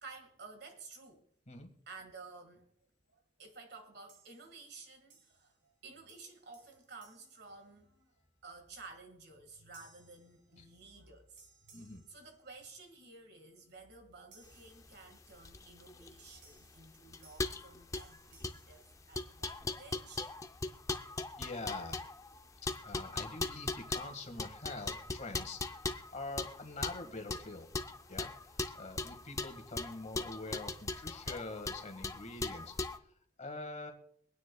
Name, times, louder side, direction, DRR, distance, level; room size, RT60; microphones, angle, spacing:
voice 1, 0.0-1.3 1.9-2.7 3.1-8.1 8.4-20.3, right 3 dB, 65° right, 1.8 m, -53 dB
sound 1, 4.1-4.7 5.1-5.8 6.1-8.2 8.8-9.0 9.7-11.1 11.4-13.0 14.3-15.5 16.4-19.7, right 4 dB, 80° right, 2.9 m, -66 dB
voice 2, 11.7-12.1 21.4-22.0 22.8-27.7 28.1-28.3 28.7-32.7 33.4-33.9, left 2 dB, 40° left, 1.7 m, -44 dB
sound 2, 14.5-33.0, left 3 dB, 20° left, 0.5 m, -40 dB
24.5 x 9.5 x 2.3 m
head